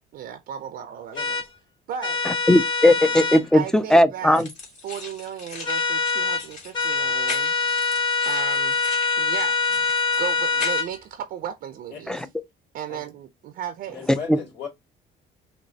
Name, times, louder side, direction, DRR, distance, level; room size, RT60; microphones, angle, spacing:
voice 1, 0.1-1.4 1.9-2.2 3.5-4.4 4.8-7.5 8.2-8.8 9.2-9.8 10.1-12.3 12.7-14.0, right 9 dB, 65° right, 0.6 m, -35 dB
sound 1, 1.2-1.5 2.0-3.4 5.6-6.4 6.7-10.9, left 4 dB, 25° left, 1.0 m, -24 dB
voice 2, 2.3-4.5 12.1-12.3 14.1-14.4, left 1 dB, 5° left, 0.5 m, -18 dB
sound 2, 4.3-11.0, left 4 dB, 50° left, 2.2 m, -39 dB
voice 3, 11.9-12.3 12.9-13.1 13.9-14.7, left 7 dB, 75° left, 2.8 m, -37 dB
5.2 x 3.0 x 2.8 m
cardioid pair, 110°, 17 cm